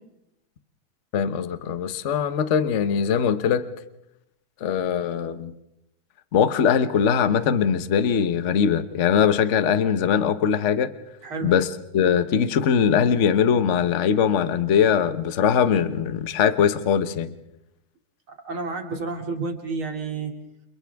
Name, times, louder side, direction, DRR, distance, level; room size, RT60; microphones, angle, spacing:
voice 1, 1.1-3.7 4.6-5.5 6.3-10.9 11.4-11.7 11.9-17.3, left 7 dB, 45° left, 11 dB, 1.1 m, -21 dB
voice 2, 18.5-20.3, right 4 dB, 75° right, 2 dB, 3.5 m, -30 dB
30.0 x 28.0 x 3.5 m, 0.86 s
omnidirectional pair, 2.3 m